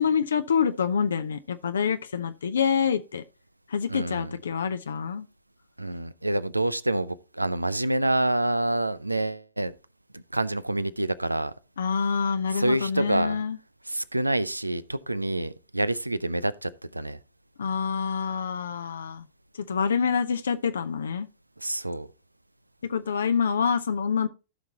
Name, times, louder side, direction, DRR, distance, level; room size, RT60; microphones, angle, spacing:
voice 1, 0.0-3.2 3.7-5.3 11.8-13.6 17.6-19.2 19.5-21.3 22.8-24.3, left 6 dB, 70° left, 0.7 m, -26 dB
voice 2, 3.9-4.4 5.8-9.7 10.1-11.5 12.5-13.4 13.9-17.2 21.6-22.1, right 1 dB, 90° right, 0.5 m, -27 dB
15.5 x 5.9 x 2.8 m
figure-of-eight pair, 100°, 0 cm